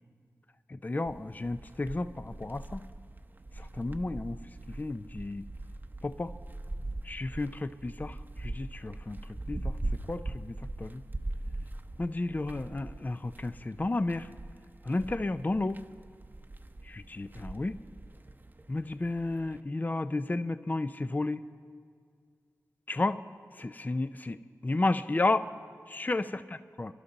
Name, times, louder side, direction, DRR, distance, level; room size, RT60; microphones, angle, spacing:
voice 1, 0.8-2.8 3.6-4.4 4.8-5.5 6.0-6.3 7.0-9.2 9.5-9.7 10.1-11.0 12.0-14.3 14.9-15.8 16.9-17.8 18.7-21.4 22.9-23.2 23.6-24.4 24.6-25.5 25.9-26.4 26.8-26.9, left 2 dB, 30° left, 12 dB, 0.5 m, -32 dB
sound 1, 1.1-19.6, right 2 dB, 30° right, 0.8 m, -41 dB
28.0 x 11.5 x 4.0 m, 2.1 s
cardioid pair, 60°, 6 cm